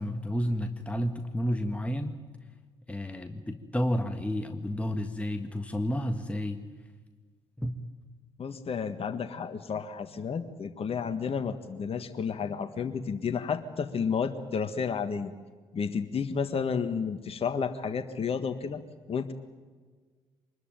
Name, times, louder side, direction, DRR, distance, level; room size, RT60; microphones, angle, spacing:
voice 1, 0.0-2.2 2.9-6.6 7.6-7.8, equal, 10° left, 6 dB, 1.7 m, -31 dB
voice 2, 8.4-15.3 15.7-18.8 19.1-19.3, left 6 dB, 40° left, 8 dB, 1.6 m, -31 dB
24.5 x 21.0 x 9.2 m, 1.5 s
hypercardioid pair, 50°, 14 cm